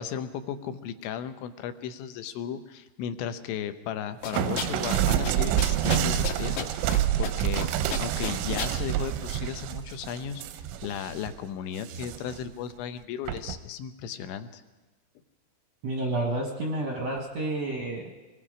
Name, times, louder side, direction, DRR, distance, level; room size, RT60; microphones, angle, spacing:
voice 1, 0.0-10.4 10.8-14.6, left 8 dB, 80° left, 10 dB, 3.2 m, -35 dB
sound 1, 4.2-5.0 5.2-5.3 5.6-7.0 7.2-7.6 7.9-8.7, left 6 dB, 55° left, 2.9 m, -32 dB
sound 2, 4.3-11.3 11.8-12.4 13.3-13.6, right 11 dB, 85° right, 3.3 m, -28 dB
voice 2, 15.8-18.1, right 2 dB, 65° right, 0 dB, 1.6 m, -30 dB
26.0 x 20.5 x 5.0 m, 1.2 s
omnidirectional pair, 5.4 m